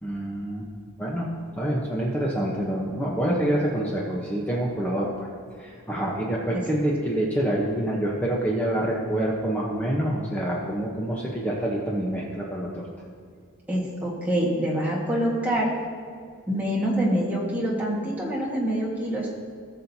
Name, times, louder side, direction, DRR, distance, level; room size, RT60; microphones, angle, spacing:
voice 1, 0.0-0.7 1.0-1.3 1.6-5.3 5.6-12.8, right 1 dB, 5° left, -4 dB, 1.0 m, -26 dB
voice 2, 13.7-15.7 16.5-19.3, equal, 10° right, -5 dB, 1.7 m, -25 dB
18.5 x 6.4 x 2.8 m, 2.2 s
head